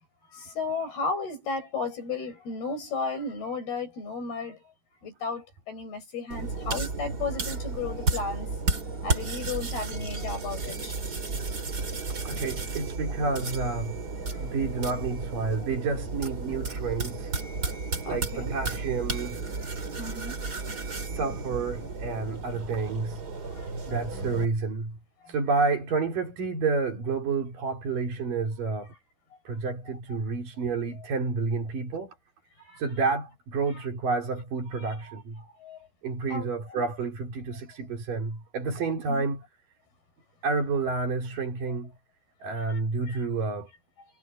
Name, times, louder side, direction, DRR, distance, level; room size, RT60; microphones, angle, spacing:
voice 1, 0.3-4.6 5.0-8.5 9.0-11.0 14.3-14.4 18.0-18.6 20.0-20.6 23.5-24.0 25.2-25.3 32.6-32.8 34.8-35.1 35.6-35.8 36.3-36.9 39.1-39.2 42.7-42.8 43.1-43.2, left 4 dB, 80° left, 9.2 m, -34 dB
sound 1, 6.3-24.5, right 3 dB, 25° right, 3.1 m, -33 dB
voice 2, 12.2-14.0 14.4-17.3 18.1-19.4 21.1-23.2 23.9-25.0 25.3-28.9 29.5-32.2 32.8-35.4 36.0-39.4 40.4-41.9 42.4-43.7, right 4 dB, 60° right, 5.5 m, -29 dB
omnidirectional pair, 4.4 m